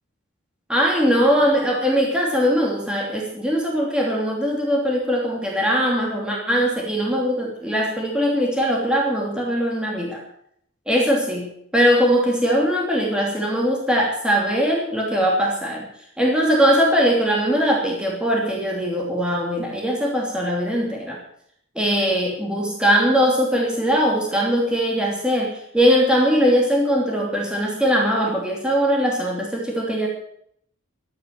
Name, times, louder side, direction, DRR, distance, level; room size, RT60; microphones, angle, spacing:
voice 1, 0.7-10.2 10.9-15.8 16.2-21.2 21.7-30.1, equal, 5° right, -2 dB, 2.9 m, -21 dB
13.0 x 9.4 x 7.7 m, 0.69 s
head